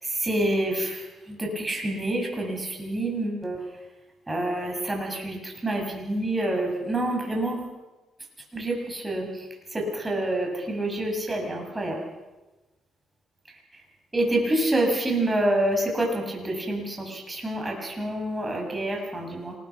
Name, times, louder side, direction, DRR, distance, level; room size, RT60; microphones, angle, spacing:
voice 1, 0.0-3.6 4.3-7.7 8.5-9.3 9.7-12.0 14.1-19.5, right 1 dB, 20° right, 1 dB, 7.3 m, -27 dB
27.5 x 21.0 x 6.0 m, 1.1 s
cardioid pair, 90°, 0 cm